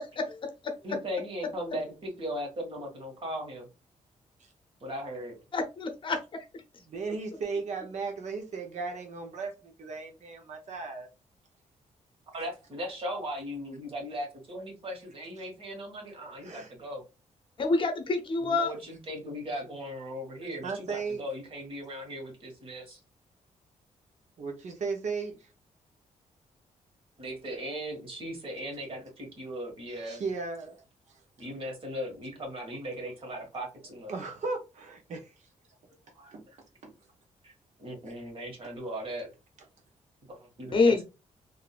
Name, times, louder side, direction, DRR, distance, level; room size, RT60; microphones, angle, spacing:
voice 1, 0.2-1.0 5.5-6.6 17.6-18.7 40.7-41.0, left 3 dB, 40° left, 0.7 m, -27 dB
voice 2, 0.8-3.7 4.8-5.4 12.3-17.1 18.4-23.0 27.2-30.2 31.4-34.2 36.1-36.4 37.4-37.5 37.8-39.3 40.3-41.0, equal, 45° right, 1.7 m, -38 dB
voice 3, 6.9-11.1 16.4-16.7 20.6-21.2 24.4-25.5 30.0-30.8 31.1-31.2 34.1-35.3 36.3-36.4 36.8-36.9, right 4 dB, 65° right, 0.9 m, -36 dB
3.8 x 2.6 x 2.4 m
cardioid pair, 135°, 13 cm